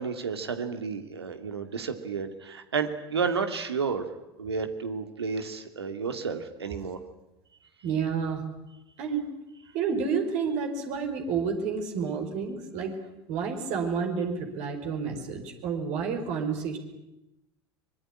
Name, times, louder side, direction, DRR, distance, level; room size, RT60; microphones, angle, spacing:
voice 1, 0.0-4.1 4.4-7.0, right 5 dB, 85° right, 8 dB, 2.5 m, -31 dB
voice 2, 7.8-8.4 9.0-9.3 9.7-13.0 13.3-16.8, right 6 dB, 60° right, 4 dB, 5.3 m, -30 dB
24.5 x 22.0 x 10.0 m, 0.90 s
hypercardioid pair, 70°, 13 cm